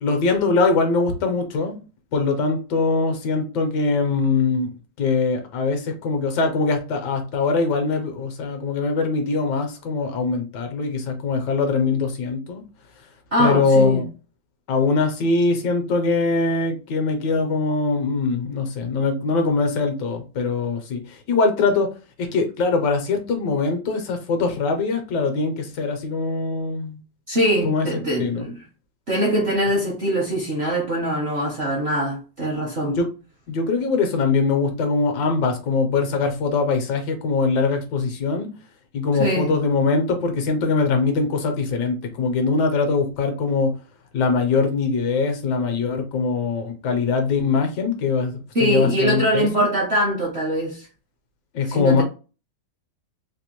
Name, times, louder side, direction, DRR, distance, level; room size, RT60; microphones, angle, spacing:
voice 1, 0.0-1.8 2.1-4.7 5.0-12.6 13.4-14.1 14.7-21.9 22.2-27.0 27.6-27.9 28.2-28.4 32.9-33.1 33.5-38.5 38.9-43.7 44.1-49.7 51.5-52.0, left 4 dB, 75° left, 1.3 m, -22 dB
voice 2, 13.3-14.0 27.3-28.6 29.1-33.0 39.2-39.5 48.5-50.9 51.7-52.0, equal, 55° right, 0.7 m, -22 dB
3.4 x 2.4 x 2.9 m
omnidirectional pair, 2.0 m